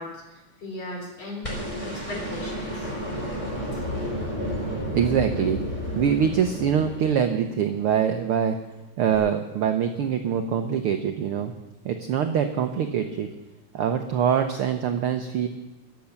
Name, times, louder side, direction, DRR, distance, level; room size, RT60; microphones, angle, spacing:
voice 1, 0.0-2.9 3.7-3.9, left 2 dB, 55° left, 0 dB, 4.7 m, -38 dB
sound 1, 1.4-7.6 9.1-9.2, equal, 10° left, 3.7 m, -31 dB
voice 2, 4.9-8.6 9.0-11.5 11.8-13.3 13.7-15.5, right 8 dB, 85° right, 6 dB, 1.2 m, -24 dB
21.5 x 7.8 x 7.1 m, 1.0 s
omnidirectional pair, 3.6 m